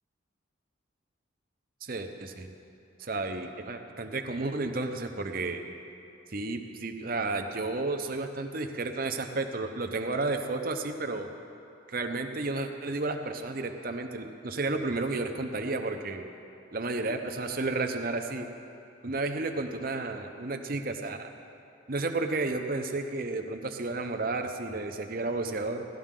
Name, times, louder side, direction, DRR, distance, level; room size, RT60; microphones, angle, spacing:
voice 1, 1.8-2.5 3.0-5.6 6.3-11.3 11.9-16.3 16.7-18.5 19.0-21.3 21.9-25.9, right 3 dB, 45° right, 5 dB, 0.8 m, -32 dB
18.0 x 13.0 x 3.8 m, 2.7 s
head